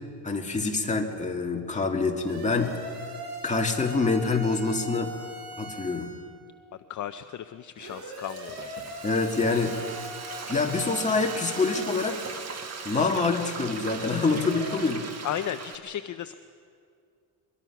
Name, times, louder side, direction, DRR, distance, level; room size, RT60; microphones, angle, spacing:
voice 1, 0.2-2.7 3.4-5.1 5.6-6.1 9.0-9.8 10.5-12.2 12.9-15.0, left 3 dB, 15° left, 1 dB, 2.1 m, -26 dB
sound 1, 2.3-6.2 7.8-12.1 13.8-14.7, right 1 dB, 70° right, 5.9 m, -40 dB
voice 2, 6.9-8.7 15.2-16.3, left 10 dB, 45° left, 10 dB, 0.6 m, -34 dB
Frying (food), 7.9-15.8, right 5 dB, 40° right, 1.6 m, -39 dB
23.0 x 22.0 x 5.9 m, 2.4 s
cardioid pair, 135°, 40 cm